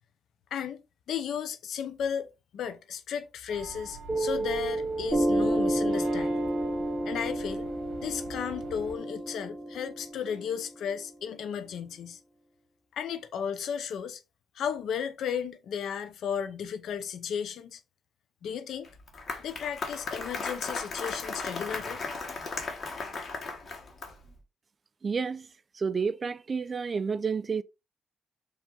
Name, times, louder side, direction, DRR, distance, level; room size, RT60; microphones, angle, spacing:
voice 1, 1.1-6.5 7.1-7.7 8.0-12.2 12.9-14.2 14.5-17.8 18.4-18.9 19.4-22.0, left 8 dB, 70° left, 0.6 m, -34 dB
sound 1, 3.5-9.0, right 3 dB, 75° right, 1.1 m, -46 dB
Piano, 4.1-11.1, right 1 dB, 15° right, 1.0 m, -30 dB
Applause, 18.8-24.3, left 4 dB, 40° left, 1.2 m, -36 dB
voice 2, 25.0-25.5 25.8-27.6, right 5 dB, 35° right, 0.3 m, -30 dB
4.6 x 2.7 x 3.8 m
cardioid pair, 105°, 0 cm